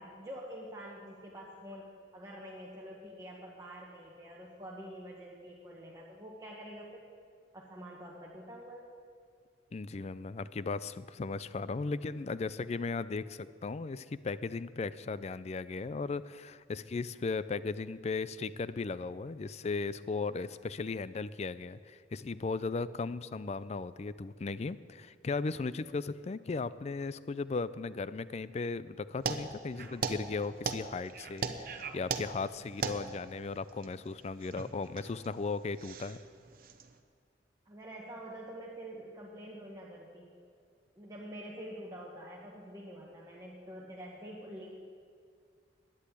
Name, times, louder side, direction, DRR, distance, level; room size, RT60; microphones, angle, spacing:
voice 1, 0.0-1.9 2.1-7.0 7.5-8.8 37.6-40.3 40.9-44.7, equal, 20° right, -4 dB, 1.5 m, -46 dB
voice 2, 9.7-36.2, left 4 dB, 40° left, 16 dB, 0.4 m, -36 dB
sound 1, 29.2-36.9, right 4 dB, 55° right, 0.9 m, -39 dB
11.5 x 10.0 x 8.3 m, 2.1 s
head